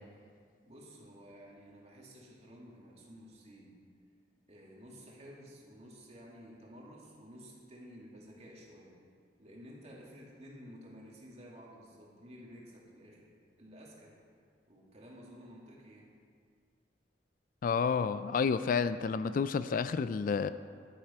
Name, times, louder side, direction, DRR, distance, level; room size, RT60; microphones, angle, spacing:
voice 1, 0.6-3.7 4.5-8.9 9.4-13.3 13.6-14.1 14.7-16.1, equal, 40° right, -3 dB, 2.2 m, -52 dB
voice 2, 17.6-20.5, left 5 dB, 50° left, 13 dB, 0.3 m, -30 dB
11.5 x 10.5 x 4.3 m, 2.1 s
head